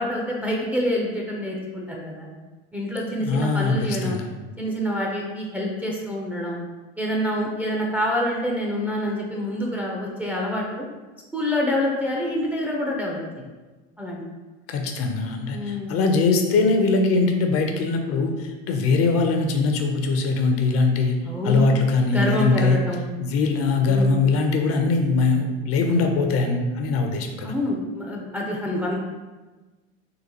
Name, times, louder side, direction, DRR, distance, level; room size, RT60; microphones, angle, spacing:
voice 1, 0.0-2.3 2.7-4.2 4.6-6.6 7.0-10.9 11.3-13.5 14.0-14.2 15.5-15.9 21.2-21.7 22.1-23.0 23.8-24.2 27.4-29.0, left 1 dB, 5° right, -3 dB, 0.4 m, -27 dB
voice 2, 3.2-4.3 14.7-21.2 21.4-22.8 23.2-27.5, left 3 dB, 45° left, 3 dB, 0.5 m, -21 dB
3.8 x 2.4 x 2.8 m, 1.2 s
hypercardioid pair, 100°, 33 cm